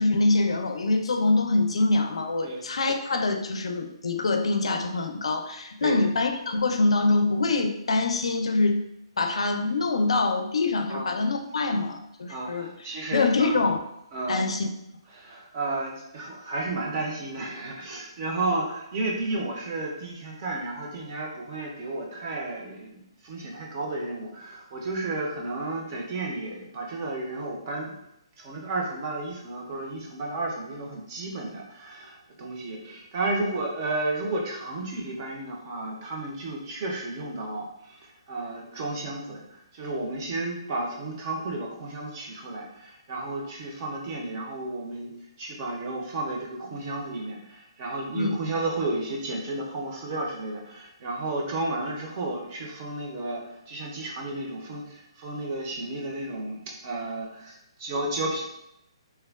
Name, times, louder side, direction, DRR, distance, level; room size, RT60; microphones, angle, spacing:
voice 1, 0.0-8.8 9.2-12.7 13.1-13.8 14.3-14.7 48.1-48.4, left 3 dB, 85° left, 5 dB, 0.4 m, -24 dB
voice 2, 12.3-13.6 14.1-14.4 15.1-28.0 28.4-45.1 45.4-58.5, right 2 dB, 25° right, -1 dB, 0.5 m, -32 dB
3.2 x 2.1 x 2.2 m, 0.80 s
hypercardioid pair, 165°, 3 cm